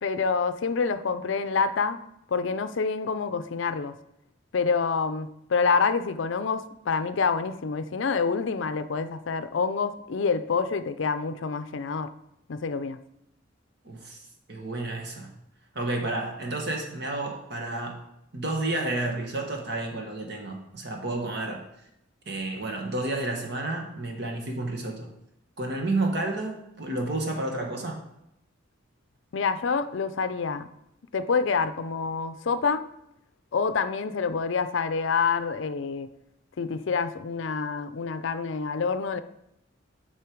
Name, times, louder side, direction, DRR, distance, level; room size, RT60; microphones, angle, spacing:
voice 1, 0.0-2.0 2.3-3.9 4.5-12.1 12.5-13.0 29.3-30.7 31.1-32.9 33.5-36.1 36.6-39.2, left 5 dB, 70° left, 12 dB, 0.5 m, -27 dB
voice 2, 13.8-14.2 14.5-15.4 15.7-18.0 18.3-21.6 22.2-25.1 25.6-28.0, right 2 dB, 55° right, 2 dB, 1.5 m, -31 dB
8.4 x 5.6 x 4.6 m, 0.81 s
head